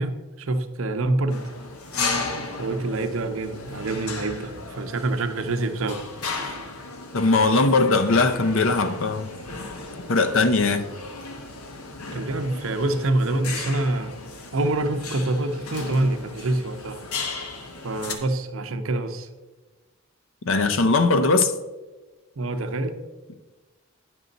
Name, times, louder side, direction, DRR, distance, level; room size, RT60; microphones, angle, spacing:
voice 1, 0.0-1.5 2.6-6.1 6.4-6.6 12.1-17.0 17.8-19.3 22.4-23.0, right 2 dB, 65° right, 0.7 m, -26 dB
sound 1, 1.3-18.1, left 3 dB, 80° left, 1.1 m, -35 dB
voice 2, 7.1-9.3 10.1-10.9 20.5-21.5, left 3 dB, 65° left, 0.7 m, -20 dB
10.0 x 6.2 x 4.0 m
head